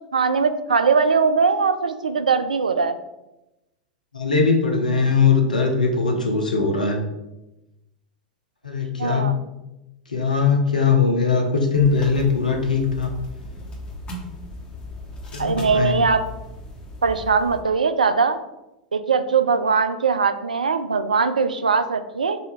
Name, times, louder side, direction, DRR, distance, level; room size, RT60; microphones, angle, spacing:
voice 1, 0.1-3.0 9.0-9.3 15.4-16.2 17.0-18.4 18.9-22.4, right 5 dB, 80° right, 10 dB, 0.3 m, -20 dB
voice 2, 4.1-7.0 8.6-9.3 10.1-13.1 15.3-16.0, left 5 dB, 85° left, 2 dB, 0.8 m, -20 dB
sound 1, 11.7-17.6, left 1 dB, 25° left, 1.3 m, -37 dB
4.1 x 2.7 x 4.7 m, 0.95 s
figure-of-eight pair, 90°, 4 cm